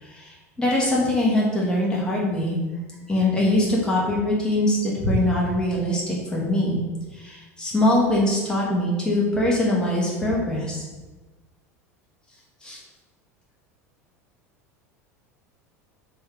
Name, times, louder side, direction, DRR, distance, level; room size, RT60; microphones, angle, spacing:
voice 1, 0.0-2.6 3.1-6.8 7.1-10.8 12.6-12.8, left 1 dB, 10° left, -4 dB, 1.4 m, -22 dB
3.7 x 3.4 x 3.6 m, 1.2 s
figure-of-eight pair, 75°, 8 cm